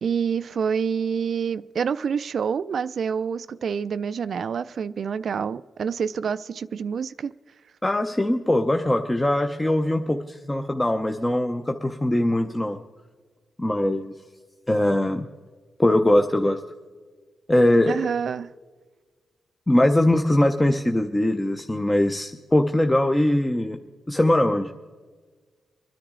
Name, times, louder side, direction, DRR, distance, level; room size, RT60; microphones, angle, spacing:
voice 1, 0.0-7.3 17.9-18.5, right 6 dB, 60° right, 14 dB, 0.3 m, -27 dB
voice 2, 7.8-12.8 13.6-14.1 14.7-15.3 15.8-16.6 17.5-18.1 19.7-23.8 24.1-24.7, left 1 dB, 15° left, 5 dB, 0.6 m, -21 dB
24.5 x 10.0 x 3.7 m, 1.4 s
cardioid pair, 115°, 0 cm